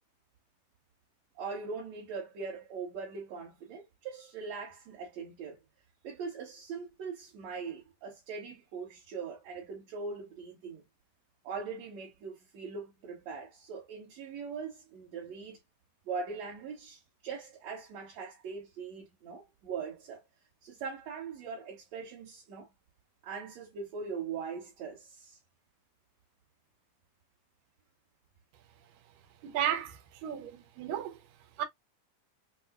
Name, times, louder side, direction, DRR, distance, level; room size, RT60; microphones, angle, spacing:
voice 1, 1.4-5.6 6.0-10.8 11.4-15.6 16.1-20.2 20.6-22.7 23.2-25.4, right 5 dB, 60° right, 2.4 m, -41 dB
voice 2, 29.4-31.2 31.6-31.7, right 10 dB, 90° right, 2.5 m, -34 dB
7.0 x 2.3 x 2.3 m
omnidirectional pair, 3.8 m